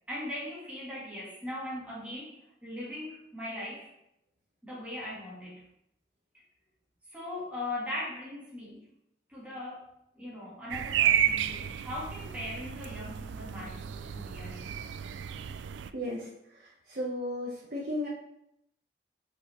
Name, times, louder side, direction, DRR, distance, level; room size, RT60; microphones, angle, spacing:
voice 1, 0.1-3.9 4.6-5.7 6.3-6.4 7.1-8.9 9.3-9.9 10.1-14.9, left 1 dB, 10° right, -7 dB, 2.0 m, -40 dB
sound 1, 10.7-15.9, right 9 dB, 85° right, 0.3 m, -31 dB
voice 2, 15.9-18.1, left 1 dB, 50° right, -5 dB, 1.1 m, -35 dB
5.4 x 4.7 x 4.4 m, 0.80 s
head